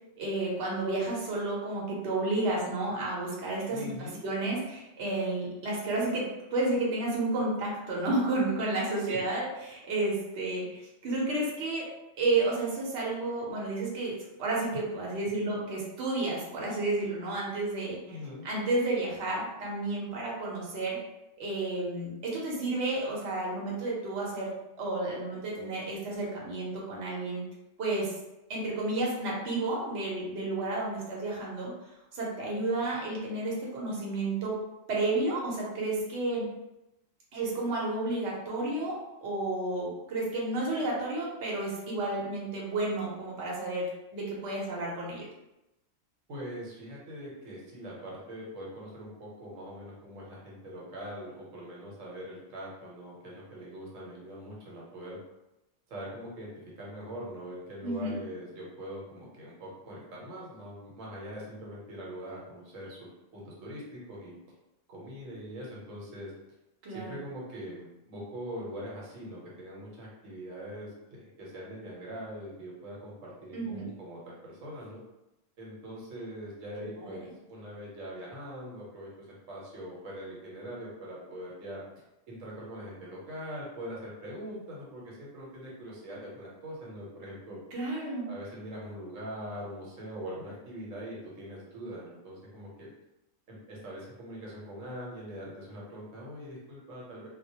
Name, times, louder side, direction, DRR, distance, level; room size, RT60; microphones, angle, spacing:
voice 1, 0.2-11.8 12.2-14.1 14.4-18.0 18.4-21.0 21.4-24.5 24.8-27.4 27.8-28.1 28.5-31.7 32.1-34.5 34.9-36.5 37.3-45.2 57.8-58.1 66.8-67.2 73.5-73.8 77.0-77.2 87.7-88.3, right 2 dB, 60° right, -4 dB, 0.9 m, -31 dB
voice 2, 3.7-4.2 9.0-9.2 15.2-15.6 18.1-18.5 46.3-55.2 55.9-56.5 56.8-64.4 64.9-66.3 66.9-75.0 75.6-81.8 82.3-87.6 88.3-92.9 93.5-97.3, equal, 85° right, -4 dB, 1.1 m, -42 dB
2.3 x 2.1 x 2.7 m, 0.93 s
omnidirectional pair, 1.3 m